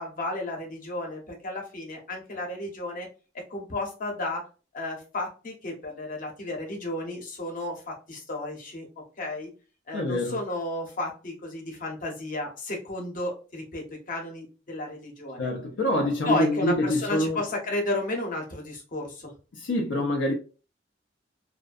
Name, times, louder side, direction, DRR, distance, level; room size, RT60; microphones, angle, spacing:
voice 1, 0.0-3.1 3.3-4.5 4.7-8.9 9.2-9.5 9.9-15.5 16.0-19.3, left 2 dB, 50° left, 0.8 m, -33 dB
voice 2, 9.9-10.4 15.4-17.4 19.5-20.3, left 1 dB, 80° left, 0.5 m, -26 dB
2.5 x 2.1 x 2.3 m
head